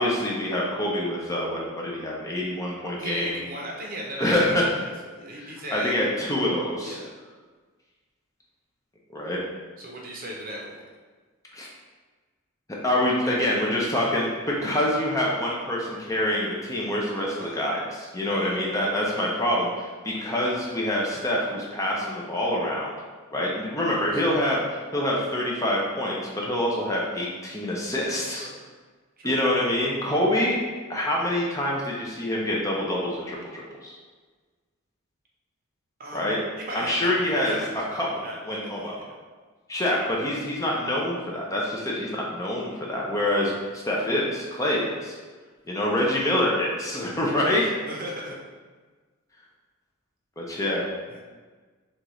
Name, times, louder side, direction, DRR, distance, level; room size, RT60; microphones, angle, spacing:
voice 1, 0.0-3.4 4.2-4.6 5.4-7.0 9.1-9.4 11.5-11.7 12.8-14.3 14.6-23.0 23.3-28.5 29.2-30.6 30.9-34.0 36.1-36.4 36.7-37.6 37.9-38.1 38.4-39.0 39.7-45.2 45.7-47.6 50.4-50.9, left 1 dB, 15° left, -3 dB, 0.6 m, -26 dB
voice 2, 3.0-4.4 4.8-5.9 6.8-7.1 9.8-10.8 17.4-17.7 18.3-18.6 20.1-20.4 24.0-24.2 28.3-28.5 29.2-29.4 36.0-39.1 41.8-41.9 43.3-43.5 47.4-48.4 51.1-51.2, equal, 40° right, -2 dB, 0.8 m, -38 dB
6.4 x 2.5 x 3.1 m, 1.4 s
head